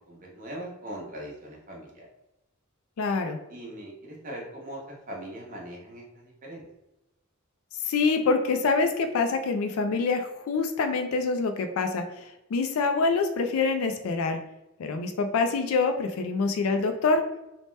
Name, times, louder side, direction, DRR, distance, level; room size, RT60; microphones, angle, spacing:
voice 1, 0.1-2.1 3.5-6.6, right 1 dB, 40° right, -2 dB, 0.8 m, -40 dB
voice 2, 3.0-3.4 7.9-12.0 12.5-14.4 14.8-17.2, left 4 dB, 80° left, 6 dB, 0.3 m, -25 dB
2.8 x 2.1 x 3.1 m, 0.94 s
head